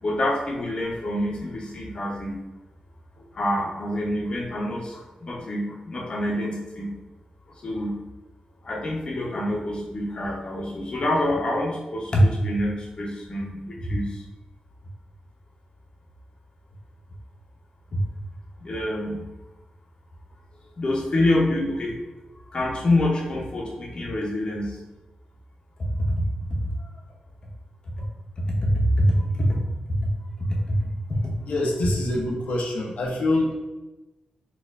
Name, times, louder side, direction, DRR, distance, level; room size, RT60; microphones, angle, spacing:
voice 1, 0.0-2.4 3.2-6.9 7.5-8.0 8.6-14.2 17.9-18.0 18.6-19.2 20.8-22.0 22.3-24.8 26.8-26.9 28.0-28.1 28.4-29.6 30.0-30.1 30.4-30.9, left 1 dB, 40° left, -2 dB, 0.6 m, -26 dB
voice 2, 31.5-33.5, left 2 dB, 85° left, -2 dB, 0.6 m, -25 dB
4.2 x 2.4 x 2.4 m, 1.1 s
wide cardioid pair, 135°, 2 cm